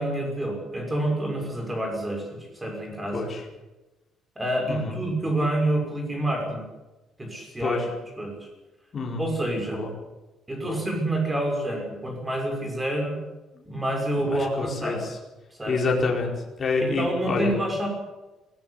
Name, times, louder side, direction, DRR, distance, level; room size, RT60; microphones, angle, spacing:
voice 1, 0.0-3.2 4.4-6.6 7.2-7.8 8.2-8.5 9.2-9.8 10.5-13.2 13.6-15.0 15.6-15.7 16.8-17.9, right 1 dB, 10° right, 2 dB, 6.0 m, -28 dB
voice 2, 3.1-3.5 4.7-5.0 7.6-7.9 8.9-9.3 9.7-9.9 10.6-10.8 13.5-13.6 14.2-15.2 15.7-17.6, left 3 dB, 25° left, -1 dB, 4.6 m, -28 dB
21.0 x 18.5 x 8.2 m, 1.1 s
cardioid pair, 175°, 0 cm